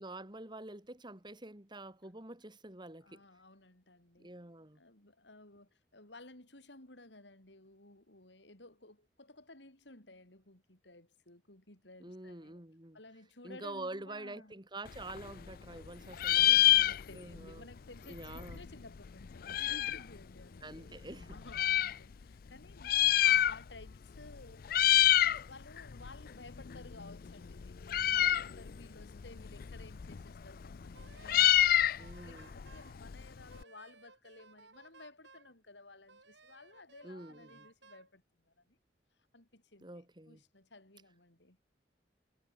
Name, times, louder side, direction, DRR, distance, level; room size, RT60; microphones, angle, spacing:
voice 1, 0.0-3.2 4.2-4.8 12.0-13.0 13.4-16.6 17.1-17.7 18.1-18.6 20.6-21.4 32.0-32.5 37.0-37.7 39.8-40.4, right 2 dB, 25° right, 2.7 m, -47 dB
voice 2, 3.0-4.3 4.7-12.6 12.9-14.6 15.7-21.0 21.3-38.8 39.3-41.6, left 2 dB, 80° left, 6.0 m, -55 dB
Meow, 14.9-15.9 16.1-17.4 17.7-17.8 18.0-20.1 20.7-21.9 22.7-23.9 24.2-24.4 24.6-25.4 25.8-33.6, left 13 dB, 55° left, 0.4 m, -28 dB
Wind instrument woodwind instrument, 30.9-32.9 33.5-35.5 36.1-38.1, right 4 dB, 80° right, 7.6 m, -60 dB
head